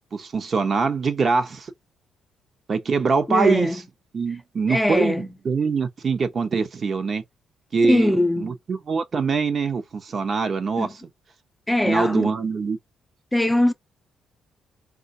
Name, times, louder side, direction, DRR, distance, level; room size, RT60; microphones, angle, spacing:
voice 1, 0.1-1.7 2.7-3.8 4.1-7.2 7.7-11.0 11.8-12.8, right 4 dB, 45° right, 0.7 m, -23 dB
voice 2, 3.3-3.8 4.7-5.3 7.8-8.5 10.8-10.9 11.7-12.3 13.3-13.7, left 1 dB, 10° left, 0.4 m, -21 dB
3.8 x 2.3 x 2.6 m
cardioid pair, 90°, 0 cm